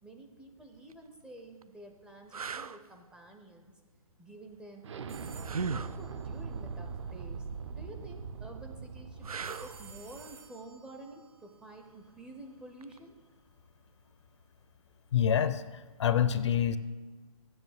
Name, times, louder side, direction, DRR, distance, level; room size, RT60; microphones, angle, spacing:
voice 1, 0.0-3.7 4.2-4.9 5.3-13.2, right 2 dB, 5° right, 3 dB, 0.5 m, -50 dB
sound 1, 0.7-0.9 1.6-1.7 2.3-2.8 5.4-6.0 9.2-9.8 12.8-13.0, right 5 dB, 90° right, 0.4 m, -36 dB
Explosion, 4.8-10.4, right 5 dB, 55° right, 0.7 m, -41 dB
sound 2, 5.1-7.1 9.4-12.5, right 5 dB, 70° right, 2.2 m, -55 dB
voice 2, 15.1-16.8, left 9 dB, 55° left, 14 dB, 0.5 m, -27 dB
7.9 x 6.7 x 7.8 m, 1.3 s
figure-of-eight pair, 140°, 18 cm